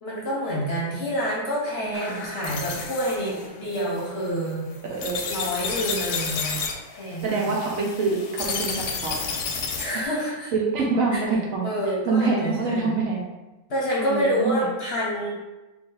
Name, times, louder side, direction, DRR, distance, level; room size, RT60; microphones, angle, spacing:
voice 1, 0.0-4.7 5.3-6.5 6.9-7.5 9.8-10.5 11.1-11.2 11.6-13.0 13.7-15.3, equal, 50° left, -4 dB, 0.9 m, -27 dB
voice 2, 1.8-2.3 4.8-5.2 7.2-8.8 9.0-9.2 9.9-10.0 10.5-11.6 12.1-13.2 14.0-14.7, right 4 dB, 65° right, -1 dB, 1.0 m, -25 dB
sound 1, 1.9-10.0, left 5 dB, 85° left, 1.2 m, -32 dB
3.2 x 2.7 x 3.7 m, 1.1 s
omnidirectional pair, 1.6 m